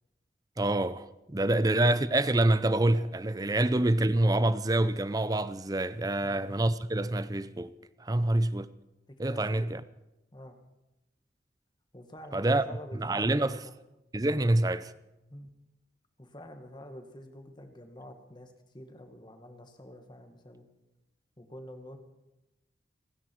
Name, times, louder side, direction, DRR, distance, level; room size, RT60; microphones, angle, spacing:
voice 1, 0.6-7.7 8.0-8.7 9.2-9.8 12.3-12.6 12.9-13.6 14.1-14.9, right 1 dB, 20° right, 0.5 m, -26 dB
voice 2, 9.3-9.6 10.3-10.6 11.9-13.7 15.3-15.5 16.2-20.7 21.4-22.0, equal, 25° left, 1.8 m, -48 dB
29.5 x 10.0 x 4.6 m
head